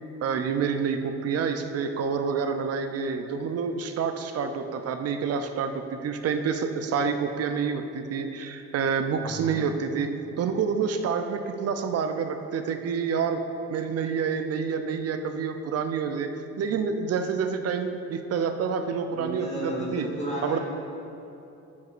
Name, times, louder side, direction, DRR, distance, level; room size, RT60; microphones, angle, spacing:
voice 1, 0.2-10.1 10.4-13.4 13.7-16.3 16.6-20.1 20.4-20.6, right 6 dB, 55° right, 7 dB, 0.5 m, -28 dB
voice 2, 9.2-9.7 19.1-20.6, equal, 20° left, -5 dB, 1.4 m, -34 dB
9.4 x 4.7 x 2.5 m, 2.9 s
cardioid pair, 90°, 30 cm